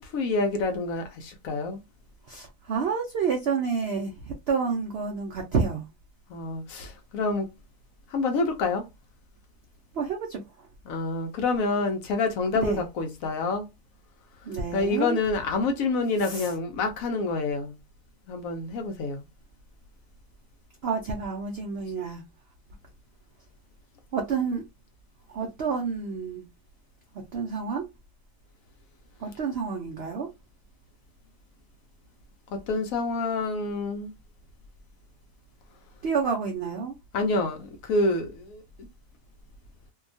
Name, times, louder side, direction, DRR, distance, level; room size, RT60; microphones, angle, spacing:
voice 1, 0.1-1.8 6.3-7.5 8.1-8.8 10.9-13.7 14.7-17.7 18.3-19.2 32.5-34.1 37.1-38.6, left 3 dB, 70° left, 0.9 m, -27 dB
voice 2, 2.3-5.8 9.9-10.4 12.5-12.8 14.4-15.2 16.2-16.5 20.8-22.2 24.1-24.6 25.3-26.4 27.3-27.8 29.2-30.3 36.0-36.9, right 5 dB, 75° right, 0.5 m, -29 dB
2.7 x 2.3 x 2.5 m
omnidirectional pair, 1.7 m